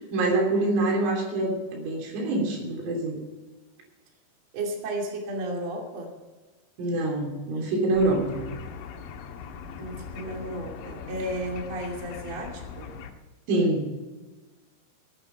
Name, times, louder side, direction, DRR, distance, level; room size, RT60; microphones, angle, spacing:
voice 1, 0.1-3.2 6.8-8.4 13.5-13.8, right 2 dB, 85° right, 0 dB, 5.8 m, -25 dB
voice 2, 4.5-6.1 9.8-12.9, right 1 dB, 40° right, 0 dB, 3.1 m, -33 dB
sound 1, 7.9-13.1, left 6 dB, 80° left, 3.5 m, -40 dB
18.0 x 9.0 x 5.7 m, 1.3 s
omnidirectional pair, 5.6 m